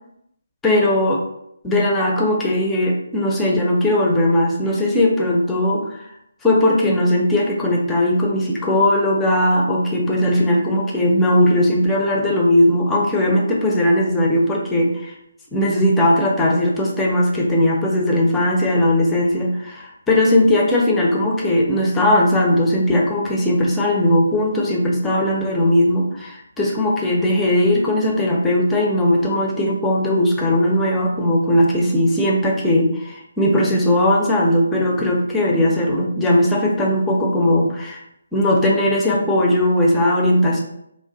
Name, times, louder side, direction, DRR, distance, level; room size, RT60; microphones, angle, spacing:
voice 1, 0.6-1.2 1.6-6.0 6.4-15.1 15.5-38.0 38.3-40.6, left 1 dB, 10° left, -2 dB, 0.5 m, -18 dB
2.5 x 2.1 x 3.8 m, 0.77 s
figure-of-eight pair, 145°, 0 cm